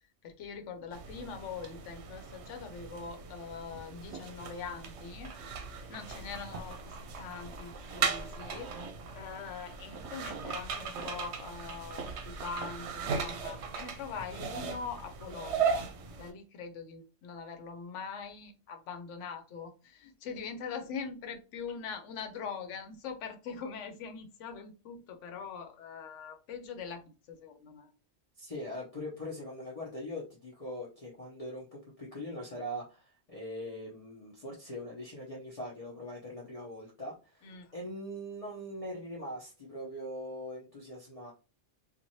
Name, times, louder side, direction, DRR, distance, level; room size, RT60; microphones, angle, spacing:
voice 1, 0.2-5.3 5.9-8.7 9.1-15.9 16.2-27.9 37.4-37.7, left 5 dB, 90° left, 1.0 m, -42 dB
sound 1, 0.9-16.3, right 6 dB, 70° right, 0.8 m, -38 dB
voice 2, 28.4-41.3, equal, 35° left, 0.7 m, -41 dB
3.0 x 2.4 x 2.7 m
omnidirectional pair, 1.2 m